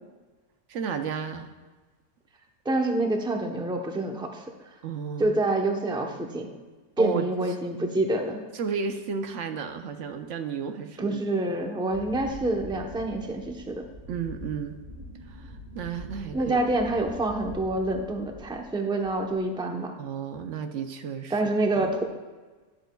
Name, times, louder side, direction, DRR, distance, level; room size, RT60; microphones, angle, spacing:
voice 1, 0.7-1.5 4.8-5.4 7.0-7.3 8.5-11.2 14.1-14.8 15.3-16.6 20.0-21.4 21.7-22.0, right 6 dB, 75° right, 7 dB, 1.0 m, -33 dB
voice 2, 2.6-4.4 5.2-6.5 7.0-8.4 11.0-13.8 16.3-19.9 21.3-22.0, right 2 dB, 5° right, 2 dB, 0.7 m, -27 dB
Wind, 11.9-18.7 19.0-19.5, equal, 40° right, 2.3 m, -44 dB
12.5 x 10.5 x 2.3 m, 1.3 s
omnidirectional pair, 1.3 m